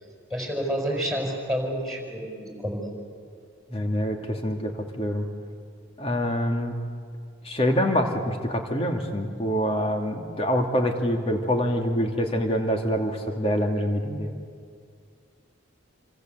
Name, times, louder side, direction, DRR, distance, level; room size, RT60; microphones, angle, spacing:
voice 1, 0.3-2.9, equal, ahead, 0 dB, 5.8 m, -29 dB
voice 2, 3.7-5.3 6.0-6.7 7.4-14.3, equal, 30° left, 3 dB, 2.6 m, -25 dB
27.5 x 25.5 x 8.1 m, 2.3 s
head